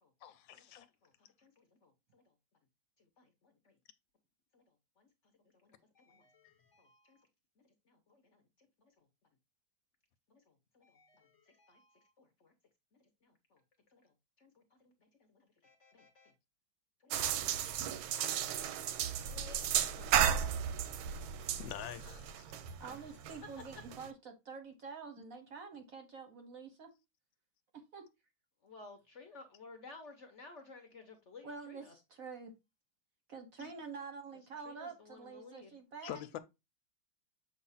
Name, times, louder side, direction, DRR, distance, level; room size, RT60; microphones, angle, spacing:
voice 1, 0.2-0.9 6.4-6.5 21.6-22.6 33.6-33.7 36.0-36.4, left 11 dB, 80° left, 1.3 m, -45 dB
voice 2, 1.0-2.3 3.0-3.8 4.5-7.3 7.6-9.1 10.3-12.5 12.9-13.6 13.9-16.3 17.0-17.8 18.2-18.3 19.2-20.3 21.6-21.7 22.9-23.0 23.7-23.8 28.6-31.9 34.6-35.8, left 3 dB, 50° left, 0.9 m, -58 dB
sound 1, 17.1-24.1, right 9 dB, 85° right, 1.5 m, -34 dB
voice 3, 22.8-26.9 27.7-28.1 31.4-32.6 33.3-36.4, right 5 dB, 60° right, 1.0 m, -47 dB
7.2 x 2.4 x 5.6 m
omnidirectional pair, 2.2 m